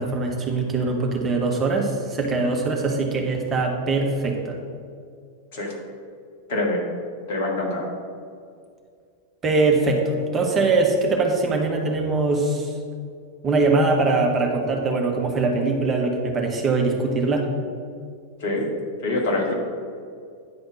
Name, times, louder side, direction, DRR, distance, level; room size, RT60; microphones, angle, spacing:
voice 1, 0.0-4.6 9.4-12.7 13.4-17.5, right 3 dB, 25° right, 1 dB, 1.2 m, -22 dB
voice 2, 6.5-6.8 7.3-7.9 18.4-18.7 19.0-19.5, left 2 dB, 50° left, -1 dB, 2.0 m, -24 dB
9.7 x 4.3 x 6.4 m, 2.2 s
figure-of-eight pair, 90°, 0 cm